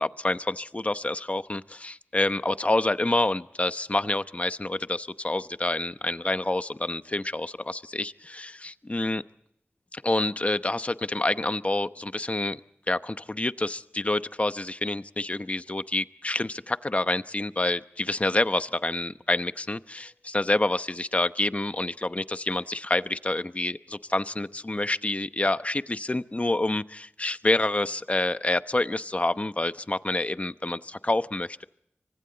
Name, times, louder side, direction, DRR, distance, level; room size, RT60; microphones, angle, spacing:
voice 1, 0.0-9.2 9.9-12.6 12.9-31.6, left 2 dB, 35° left, 12 dB, 0.9 m, -27 dB
28.0 x 25.0 x 4.0 m, 0.78 s
wide cardioid pair, 70°, 4 cm